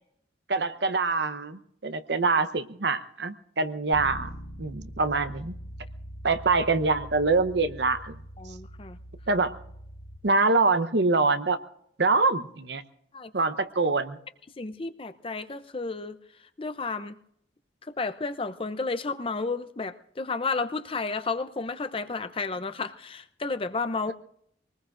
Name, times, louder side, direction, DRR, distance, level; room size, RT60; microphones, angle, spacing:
voice 1, 0.5-4.3 4.6-5.5 6.2-8.1 9.3-9.5 10.2-11.6 12.0-12.8 13.3-14.2, right 3 dB, 70° right, 10 dB, 0.9 m, -25 dB
Bass guitar, 3.9-10.2, equal, 60° left, 2.5 m, -42 dB
voice 2, 8.4-9.0 13.1-13.3 14.6-16.2 16.6-17.2 18.0-24.1, left 3 dB, 30° left, 11 dB, 0.6 m, -32 dB
24.0 x 19.5 x 2.5 m, 0.71 s
head